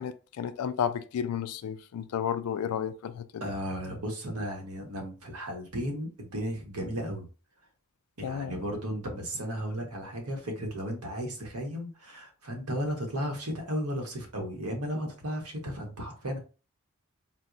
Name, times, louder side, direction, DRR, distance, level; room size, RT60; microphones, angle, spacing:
voice 1, 0.0-3.4 8.2-8.6, left 8 dB, 75° left, 0.3 m, -32 dB
voice 2, 3.4-7.3 8.2-16.4, equal, 85° right, 1.0 m, -34 dB
4.3 x 2.0 x 2.4 m
head